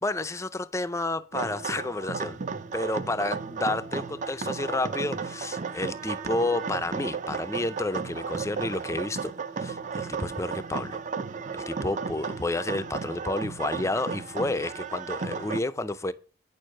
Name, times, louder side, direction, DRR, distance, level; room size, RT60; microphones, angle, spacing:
voice 1, 0.0-2.4 2.7-11.0 11.5-16.1, left 2 dB, 15° left, 0.5 m, -30 dB
sound 1, 1.3-15.6, right 5 dB, 40° right, 0.5 m, -34 dB
9.2 x 6.5 x 6.3 m
head